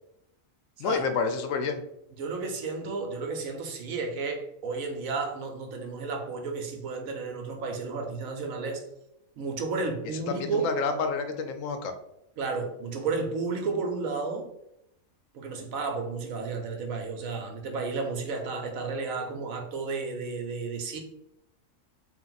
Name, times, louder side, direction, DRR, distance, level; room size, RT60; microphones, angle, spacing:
voice 1, 0.8-1.8 10.3-11.9, left 5 dB, 75° left, 7 dB, 0.9 m, -29 dB
voice 2, 2.2-8.9 9.4-10.7 12.4-14.5 15.3-21.0, right 4 dB, 80° right, 3 dB, 1.2 m, -32 dB
3.5 x 2.6 x 3.9 m, 0.80 s
omnidirectional pair, 1.4 m